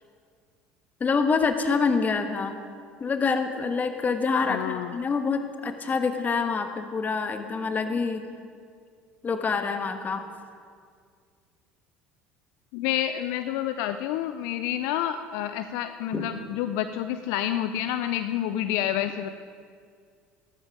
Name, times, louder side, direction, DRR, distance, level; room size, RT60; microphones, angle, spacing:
voice 1, 1.0-2.6 3.0-8.2 9.2-10.2 16.1-16.3, left 5 dB, 30° left, 7 dB, 1.4 m, -26 dB
voice 2, 4.5-5.0 12.7-19.3, left 11 dB, 65° left, 10 dB, 0.5 m, -29 dB
14.5 x 12.5 x 4.9 m, 2.1 s
hypercardioid pair, 70°, 5 cm